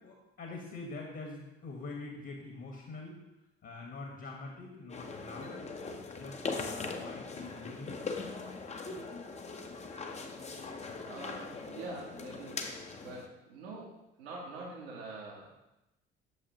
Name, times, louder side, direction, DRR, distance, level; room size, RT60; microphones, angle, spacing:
voice 1, 0.0-3.2 3.6-5.6 6.1-8.6, left 3 dB, 40° left, 1 dB, 1.5 m, -45 dB
sound 1, 4.9-13.3, left 4 dB, 20° left, 0.8 m, -41 dB
voice 2, 10.3-12.6 13.0-15.5, right 3 dB, 70° right, -4 dB, 1.3 m, -45 dB
8.6 x 6.7 x 3.0 m, 0.92 s
figure-of-eight pair, 50°, 31 cm